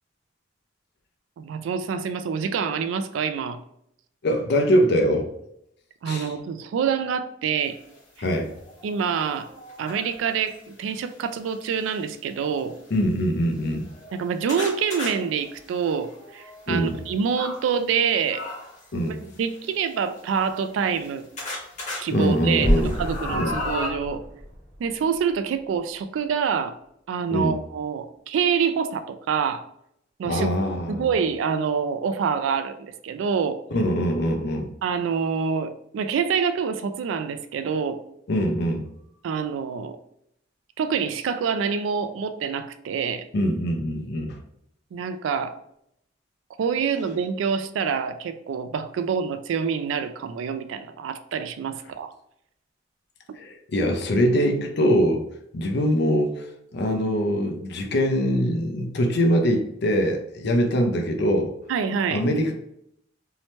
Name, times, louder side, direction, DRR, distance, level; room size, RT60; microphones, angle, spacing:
voice 1, 1.4-3.6 6.0-7.8 8.8-9.5 9.8-12.8 14.1-18.4 19.1-21.3 22.0-24.2 24.8-26.8 27.1-29.7 30.2-30.5 30.9-33.6 34.8-38.0 39.2-40.0 40.8-43.3 44.9-45.6 46.6-52.1 61.7-62.2, right 6 dB, 85° right, 10 dB, 0.3 m, -26 dB
voice 2, 4.2-5.3 6.1-6.3 8.2-8.5 12.9-13.9 16.7-17.0 18.9-19.2 22.1-23.0 23.3-23.6 27.3-27.5 30.2-31.0 33.7-34.7 38.3-38.8 43.3-44.4 53.4-55.2 55.5-56.4 56.7-61.5 62.1-62.5, equal, 60° left, 4 dB, 0.5 m, -23 dB
sound 1, 7.9-8.0 8.6-10.6 11.5-11.9 12.6-12.7 12.9-13.0 13.6-17.6 18.3-18.9 19.8-21.1 21.4-22.0 22.4-23.9, left 2 dB, 40° left, 1.0 m, -36 dB
sound 2, 22.6-25.6, equal, 10° right, 0.7 m, -28 dB
2.7 x 2.1 x 3.0 m, 0.75 s
head